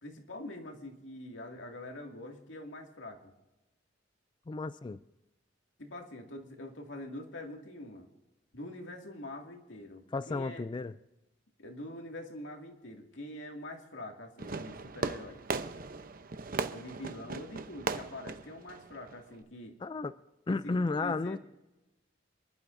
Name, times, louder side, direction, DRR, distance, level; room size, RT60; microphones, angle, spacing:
voice 1, 0.0-3.3 5.8-8.1 8.5-10.7 11.6-15.4 16.7-19.7 20.5-21.4, left 1 dB, 85° left, 2 dB, 2.2 m, -45 dB
voice 2, 4.5-5.0 10.1-11.0 19.8-20.2 20.5-21.4, left 3 dB, 25° left, 13 dB, 0.3 m, -33 dB
Fireworks, 14.4-19.4, right 4 dB, 50° right, 0.8 m, -38 dB
27.5 x 11.5 x 2.6 m, 1.0 s
head